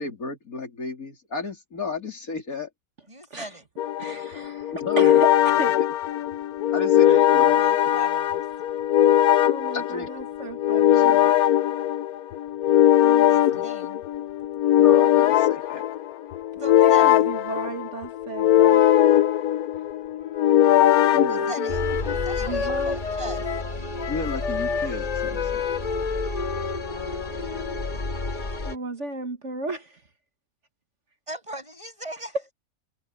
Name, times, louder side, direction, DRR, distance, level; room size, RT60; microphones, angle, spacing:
voice 1, 0.0-2.7 4.8-5.2 5.8-5.9 6.7-7.6 9.7-10.1 10.9-11.4 13.3-13.7 14.8-15.8 21.1-21.5 24.1-25.7, left 3 dB, 70° left, 3.9 m, -33 dB
voice 2, 3.1-3.7 6.7-8.4 10.9-11.1 13.3-14.0 16.5-17.2 21.3-21.8 22.2-23.5 31.3-32.4, right 1 dB, 20° right, 7.3 m, -39 dB
sound 1, 3.8-22.1, left 12 dB, 85° left, 1.2 m, -20 dB
voice 3, 4.0-5.8 9.4-11.2 13.0-13.4 16.8-18.9 21.6-21.7 22.4-22.9 28.7-30.0, right 3 dB, 50° right, 1.9 m, -34 dB
Wind instrument woodwind instrument, 20.2-23.7 24.0-27.8, left 6 dB, 55° left, 0.4 m, -30 dB
sound 2, 21.7-28.8, left 2 dB, 35° left, 1.8 m, -31 dB
omnidirectional pair, 1.5 m